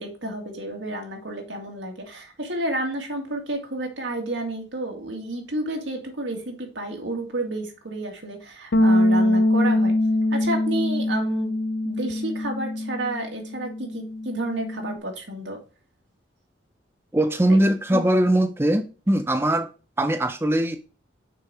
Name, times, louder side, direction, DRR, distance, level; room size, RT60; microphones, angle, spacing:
voice 1, 0.0-9.9 10.3-11.5 11.8-15.6 17.5-17.6 17.9-18.1, right 1 dB, 80° right, 2.2 m, -31 dB
Bass guitar, 8.7-15.0, left 1 dB, 60° left, 0.6 m, -23 dB
voice 2, 17.1-19.7 20.0-20.8, right 1 dB, 15° right, 0.5 m, -21 dB
6.6 x 5.1 x 4.8 m
head